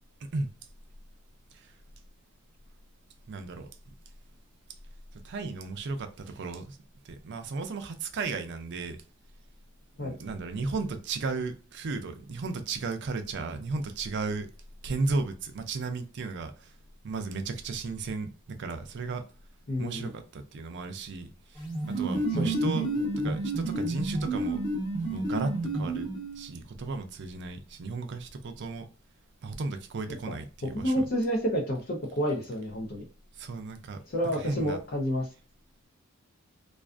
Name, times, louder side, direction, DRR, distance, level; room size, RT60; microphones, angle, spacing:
voice 1, 3.3-3.7 5.1-6.8 7.0-9.0 10.0-14.5 14.8-16.7 17.0-19.2 19.8-22.9 23.2-24.6 25.1-26.1 26.3-28.9 29.4-31.1 33.3-34.0 34.3-34.8, right 3 dB, 55° right, 0.4 m, -35 dB
voice 2, 19.7-20.1 22.4-22.5 30.3-30.4 30.8-33.1 34.1-35.3, equal, 45° left, 0.6 m, -29 dB
sound 1, 21.6-26.5, right 1 dB, 20° left, 0.9 m, -30 dB
2.4 x 2.3 x 2.4 m
head